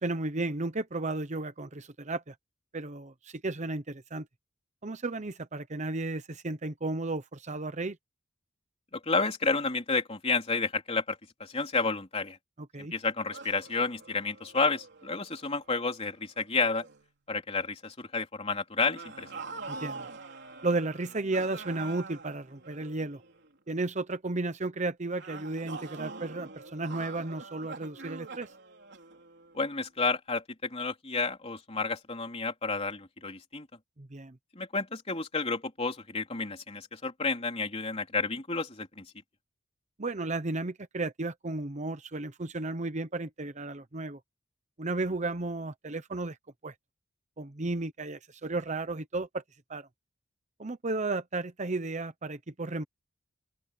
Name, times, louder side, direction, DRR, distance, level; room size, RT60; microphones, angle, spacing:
voice 1, 0.0-2.3 2.7-4.3 4.8-8.0 12.7-12.9 19.7-20.0 20.6-23.2 23.7-28.5 34.0-34.4 40.0-44.2 44.8-46.4 46.6-46.7 47.4-49.4 49.7-49.9 50.6-52.8, right 2 dB, 35° right, 0.9 m, -33 dB
voice 2, 8.9-12.4 12.8-16.9 17.3-19.4 29.5-33.7 34.6-39.1, left 4 dB, 30° left, 3.5 m, -31 dB
sound 1, 13.3-16.4 16.8-17.1 18.9-23.5 25.2-29.8, right 3 dB, 60° right, 3.7 m, -45 dB
open air
head